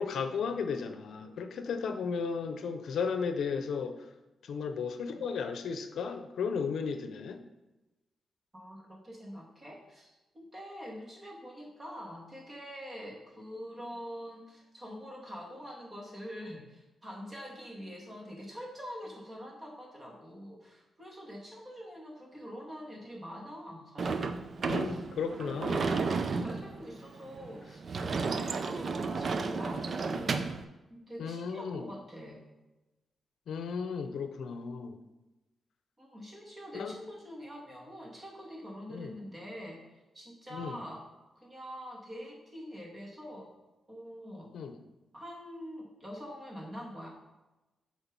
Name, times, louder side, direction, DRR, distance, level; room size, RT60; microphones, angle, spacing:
voice 1, 0.0-4.0 4.4-7.4 24.7-25.8 31.2-31.9 33.5-35.0 36.7-36.9 38.9-39.1 40.5-40.8 44.5-44.8, left 5 dB, 80° left, 8 dB, 0.6 m, -34 dB
voice 2, 8.5-24.4 24.8-25.0 25.3-30.4 30.9-32.5 36.0-41.1 41.4-43.5 43.9-44.5 45.1-47.1, equal, 25° right, -2 dB, 2.4 m, -45 dB
Sliding door / Slam, 24.0-30.6, right 4 dB, 55° right, 0.5 m, -33 dB
7.1 x 4.6 x 5.4 m, 1.1 s
cardioid pair, 80°, 0 cm